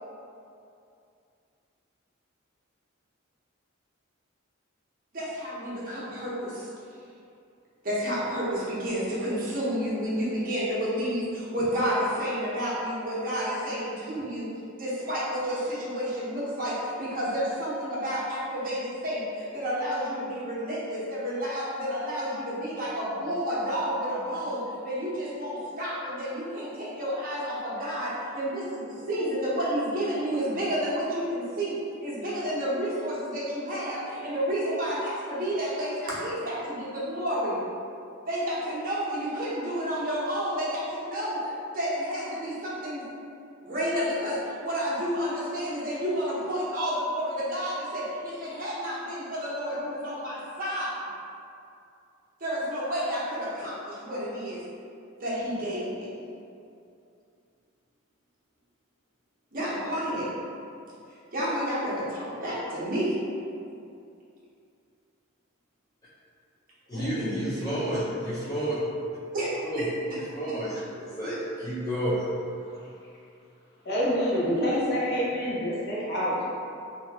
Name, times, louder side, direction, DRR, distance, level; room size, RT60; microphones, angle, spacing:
voice 1, 5.1-6.7 7.8-14.5 14.8-31.7 32.0-37.6 38.3-43.1 43.6-51.0 52.4-54.6 55.2-56.1 59.5-60.4 61.3-63.1 66.9-67.4 69.3-69.8 71.2-71.3, equal, 40° right, -8 dB, 0.7 m, -30 dB
voice 2, 66.9-68.8 69.7-69.9 70.3-72.3, right 1 dB, 20° left, -11 dB, 0.3 m, -30 dB
voice 3, 73.8-76.4, equal, 50° left, -8 dB, 0.7 m, -26 dB
2.7 x 2.3 x 2.8 m, 2.6 s
head